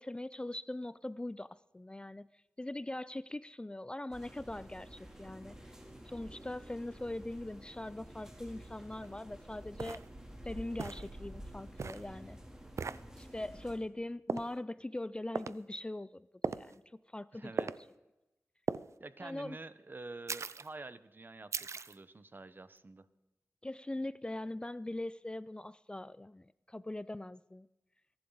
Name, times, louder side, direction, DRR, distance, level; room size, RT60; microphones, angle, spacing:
voice 1, 0.0-2.3 2.6-5.7 6.1-10.0 10.4-12.4 13.2-16.8 17.1-17.7 19.2-19.6 23.6-27.7, left 1 dB, 20° left, 17 dB, 0.4 m, -41 dB
sound 1, 4.1-13.8, equal, 10° right, 3.0 m, -50 dB
sound 2, 9.0-9.1 9.8-10.1 10.8-11.1 11.8-12.1 12.8-13.0 14.3-14.5 15.4-15.6 16.4-16.7 17.6-17.8 18.7-18.9 20.3-20.7 21.5-22.0, right 5 dB, 70° right, 0.5 m, -37 dB
voice 2, 17.3-17.7 19.0-23.1, right 3 dB, 40° right, 14 dB, 0.9 m, -48 dB
23.0 x 11.5 x 3.9 m, 0.96 s
cardioid pair, 60°, 5 cm